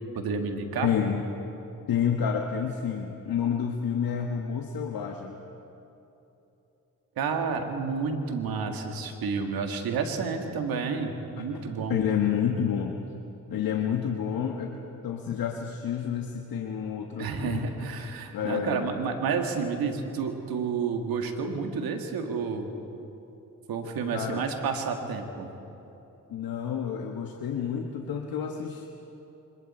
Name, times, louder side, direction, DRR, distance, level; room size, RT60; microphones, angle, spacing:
voice 1, 0.1-0.9 7.2-12.0 17.2-22.7 23.7-25.5, right 5 dB, 85° right, 4 dB, 2.1 m, -30 dB
voice 2, 0.8-1.2 1.9-5.4 11.9-13.0 13.5-17.7 18.3-18.9 24.1-24.4 26.3-28.9, left 8 dB, 75° left, 2 dB, 1.5 m, -29 dB
27.5 x 26.0 x 4.4 m, 2.9 s
supercardioid pair, 45°, 35 cm